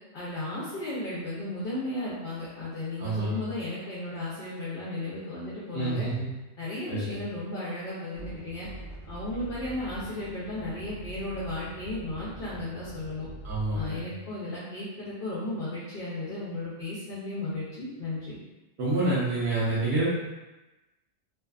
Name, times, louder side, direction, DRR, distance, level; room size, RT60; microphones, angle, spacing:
voice 1, 0.1-6.1 6.6-8.7 9.1-13.3 13.7-18.4, left 2 dB, 60° left, -8 dB, 0.7 m, -35 dB
voice 2, 3.0-3.5 5.7-6.3 6.9-7.2 13.4-14.0 18.8-20.0, right 2 dB, 65° right, -9 dB, 0.9 m, -28 dB
sound 1, 8.1-13.9, right 1 dB, 85° right, 0.9 m, -43 dB
2.7 x 2.3 x 2.3 m, 1.1 s
omnidirectional pair, 1.2 m